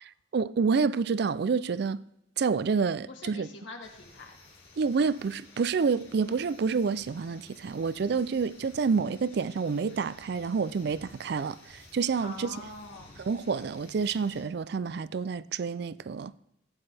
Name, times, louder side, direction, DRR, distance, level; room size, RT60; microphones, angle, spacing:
voice 1, 0.3-2.0 2.4-3.5 4.8-12.6 13.2-16.3, right 5 dB, 55° right, 0.4 m, -28 dB
voice 2, 3.1-4.4 12.2-13.1, left 3 dB, 75° left, 1.9 m, -44 dB
sound 1, 3.8-14.4, left 3 dB, 55° left, 2.9 m, -54 dB
15.5 x 8.9 x 3.4 m
head